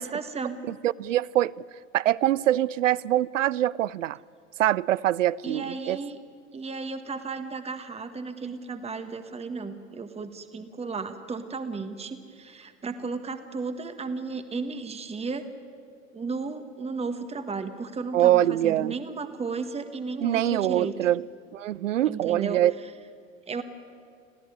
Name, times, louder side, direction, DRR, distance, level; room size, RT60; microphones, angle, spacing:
voice 1, 0.0-0.6 5.4-6.2 6.5-15.4 16.1-20.9 22.0-22.6 23.5-23.6, right 4 dB, 15° right, 1.6 m, -34 dB
voice 2, 0.7-1.5 1.9-4.2 4.6-6.0 18.1-18.9 20.2-21.3 21.5-22.7, right 13 dB, 75° right, 0.6 m, -24 dB
26.5 x 16.0 x 9.6 m
figure-of-eight pair, 80°, 38 cm